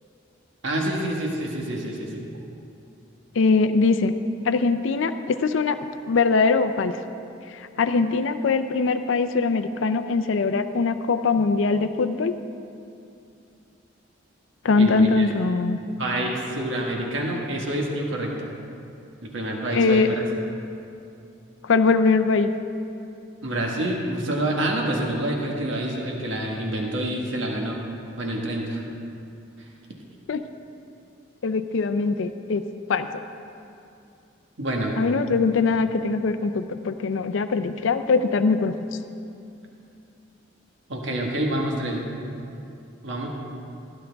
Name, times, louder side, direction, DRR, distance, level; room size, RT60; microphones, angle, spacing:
voice 1, 0.6-2.2 14.8-15.3 16.0-18.3 19.3-20.2 23.4-27.8 28.2-28.8 34.6-34.9 40.9-42.0 43.0-43.3, right 1 dB, 70° right, -1 dB, 1.4 m, -27 dB
voice 2, 3.4-4.1 4.4-5.8 6.1-7.0 7.5-12.3 14.6-15.8 19.7-20.1 21.6-22.5 30.3-30.4 31.4-32.6 32.9-33.1 35.0-38.7, left 4 dB, 70° left, 9 dB, 0.4 m, -22 dB
16.0 x 11.0 x 3.4 m, 2.6 s
head